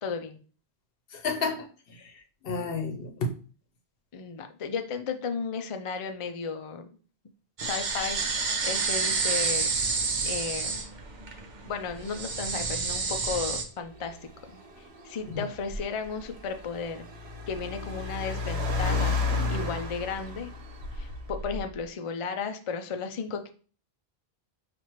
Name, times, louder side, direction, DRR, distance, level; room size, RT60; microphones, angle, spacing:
voice 1, 0.0-0.4 4.1-6.9 7.6-9.8 10.2-10.8 11.6-14.2 14.5-17.1 17.5-19.2 19.5-20.5 20.9-23.5, left 5 dB, 50° left, 6 dB, 0.4 m, -34 dB
voice 2, 1.1-2.1 2.4-3.3 15.3-15.4, left 3 dB, 65° left, 4 dB, 0.9 m, -31 dB
sound 1, 7.6-13.6, right 4 dB, 50° right, 0.7 m, -29 dB
Car, 13.8-21.8, left 3 dB, 80° right, 1.0 m, -33 dB
5.6 x 2.5 x 3.0 m, 0.39 s
omnidirectional pair, 1.1 m